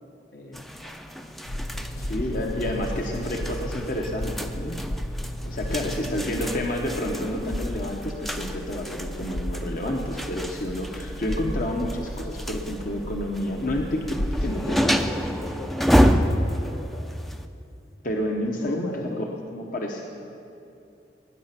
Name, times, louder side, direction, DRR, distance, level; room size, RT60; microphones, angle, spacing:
voice 1, 0.3-1.3 1.7-3.7 5.7-6.2 14.4-17.3 18.4-19.4, left 1 dB, 65° left, 3 dB, 1.4 m, -41 dB
sound 1, 0.5-17.4, equal, ahead, 0.5 m, -29 dB
sound 2, 1.5-14.7, equal, 85° left, 0.9 m, -34 dB
voice 2, 2.0-4.8 5.4-14.9 18.0-20.0, left 1 dB, 50° left, 1 dB, 1.1 m, -30 dB
20.0 x 9.9 x 5.9 m, 2.6 s
head